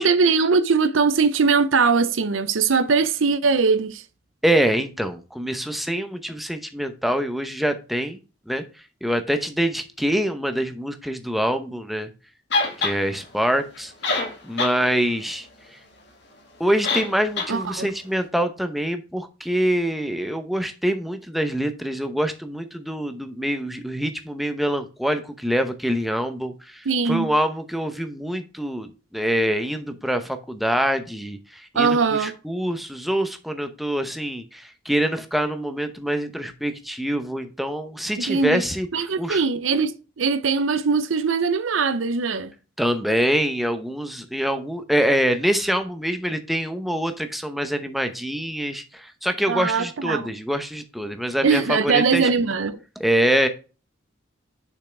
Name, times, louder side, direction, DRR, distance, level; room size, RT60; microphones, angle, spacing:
voice 1, 0.0-4.0 17.5-17.9 26.9-27.3 31.7-32.3 38.2-38.6 38.9-42.5 49.5-50.3 51.4-52.8, right 5 dB, 80° right, 0.7 m, -21 dB
voice 2, 4.4-8.2 8.5-8.6 9.0-12.1 12.8-13.9 14.4-15.5 16.6-39.4 42.8-52.3 53.0-53.5, equal, ahead, 0.8 m, -25 dB
sound 1, 12.5-13.0 13.8-13.9 14.0-14.8 15.1-15.2 16.8-17.1 17.4-17.5, left 3 dB, 60° left, 1.9 m, -23 dB
6.8 x 5.6 x 3.4 m
head